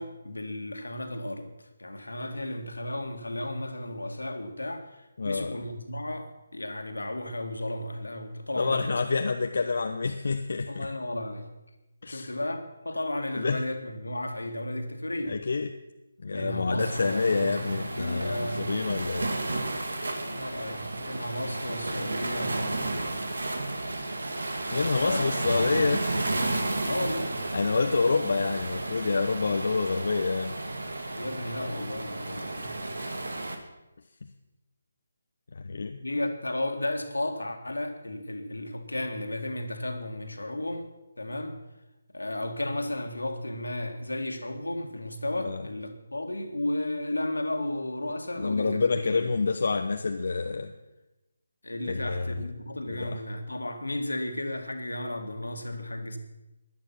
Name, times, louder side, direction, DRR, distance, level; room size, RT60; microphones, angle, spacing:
voice 1, 0.0-9.0 10.7-11.5 12.0-15.4 16.3-18.9 20.1-23.0 24.9-25.3 26.9-27.3 31.2-32.8 36.0-41.6 42.1-49.3 51.6-56.2, left 1 dB, 80° left, 6 dB, 2.2 m, -34 dB
voice 2, 5.2-5.6 8.6-10.9 12.0-12.3 13.3-13.6 15.3-15.7 16.2-19.6 24.7-26.3 27.5-30.6 35.5-36.0 45.4-45.6 48.3-50.7 51.9-52.4 52.9-53.2, left 4 dB, 55° left, 5 dB, 0.9 m, -28 dB
Waves surf, 16.8-33.6, right 2 dB, 70° right, 2.1 m, -32 dB
16.5 x 11.5 x 5.9 m, 1.0 s
figure-of-eight pair, 150°, 0 cm